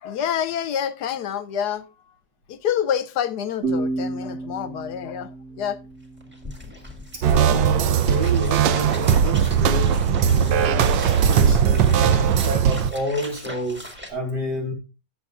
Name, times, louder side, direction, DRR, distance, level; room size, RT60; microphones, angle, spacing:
voice 1, 0.0-1.8 2.5-5.3 5.6-5.8, left 9 dB, 70° left, 1.2 m, -27 dB
sound 1, 3.6-7.0, right 2 dB, 50° right, 7.7 m, -31 dB
sound 2, 5.9-6.0 6.2-14.1, equal, 5° right, 1.7 m, -39 dB
voice 2, 7.1-14.7, equal, 65° right, 4.2 m, -29 dB
sound 3, 7.2-12.9, right 8 dB, 90° right, 1.3 m, -19 dB
17.0 x 7.0 x 2.4 m
omnidirectional pair, 1.9 m